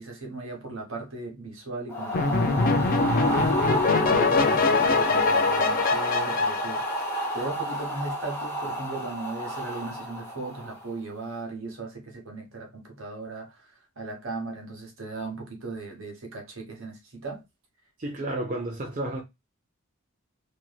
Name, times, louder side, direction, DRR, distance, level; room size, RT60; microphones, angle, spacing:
voice 1, 0.0-3.6 3.9-7.1 7.3-17.4 18.2-18.4, right 3 dB, 65° right, 1.2 m, -37 dB
sound 1, 1.9-11.0, right 1 dB, 10° left, 0.7 m, -31 dB
sound 2, 2.1-7.6, left 4 dB, 40° left, 0.3 m, -23 dB
voice 2, 18.0-19.2, right 1 dB, 35° right, 0.5 m, -31 dB
3.1 x 2.6 x 2.2 m
head